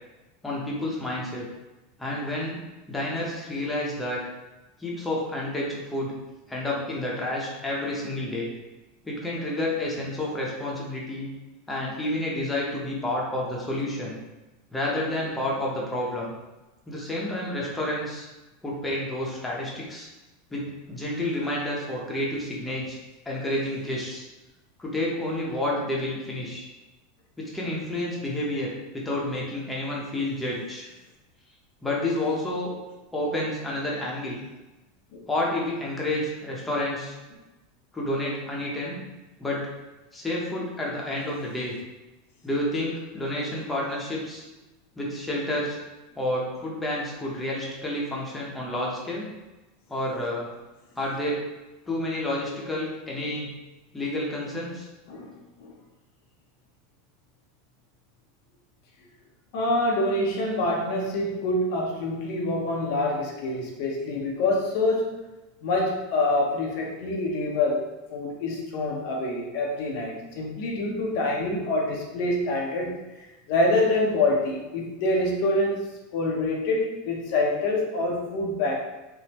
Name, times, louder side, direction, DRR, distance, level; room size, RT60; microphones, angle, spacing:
voice 1, 0.4-1.4 2.0-2.6 2.9-4.2 4.8-6.1 6.5-8.5 9.0-11.3 11.7-14.2 14.7-16.3 16.9-18.3 18.6-20.1 20.5-23.0 23.3-24.2 24.8-26.7 27.4-30.9 31.8-32.7 33.1-34.4 35.3-37.2 37.9-39.0 39.4-39.7 40.1-41.7 42.4-44.4 45.0-45.8 46.2-49.3 49.9-50.5 51.0-51.4 51.9-53.5 53.9-54.9, left 1 dB, 10° left, -4 dB, 0.7 m, -29 dB
voice 2, 59.5-65.3 65.6-75.8 76.1-78.8, left 2 dB, 60° left, -1 dB, 0.6 m, -26 dB
3.4 x 2.0 x 2.9 m, 1.1 s
supercardioid pair, 130°, 0 cm